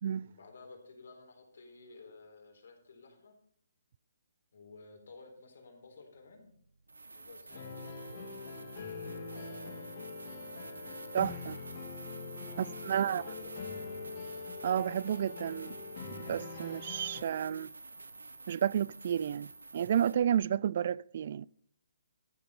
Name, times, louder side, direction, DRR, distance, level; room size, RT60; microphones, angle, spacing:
voice 1, 0.2-3.3 4.5-6.5 7.1-8.8 9.3-9.9 12.4-13.9, left 3 dB, 65° left, 3.9 m, -54 dB
sound 1, 6.2-6.3 6.9-20.1, right 3 dB, 85° right, 1.1 m, -49 dB
sound 2, 7.5-17.2, left 5 dB, 45° left, 2.4 m, -44 dB
voice 2, 11.1-11.6 12.6-13.2 14.6-15.7 16.3-17.7 18.5-21.5, right 9 dB, 50° right, 0.3 m, -31 dB
13.0 x 7.6 x 5.4 m
hypercardioid pair, 145°, 0 cm